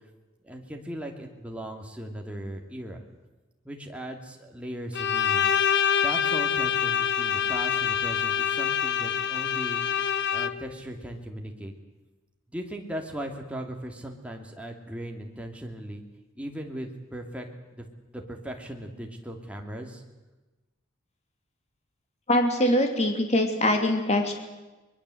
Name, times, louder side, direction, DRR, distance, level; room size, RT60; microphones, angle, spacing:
voice 1, 0.4-3.0 3.6-5.5 6.0-9.8 10.3-11.7 12.5-16.0 16.3-17.5 17.7-17.8 18.1-20.0, right 1 dB, 5° right, 2 dB, 2.7 m, -38 dB
Bowed string instrument, 4.9-10.8, left 8 dB, 60° left, 0.9 m, -26 dB
voice 2, 22.3-24.3, left 1 dB, 35° left, 4 dB, 2.9 m, -23 dB
23.0 x 22.0 x 7.9 m, 1.1 s
head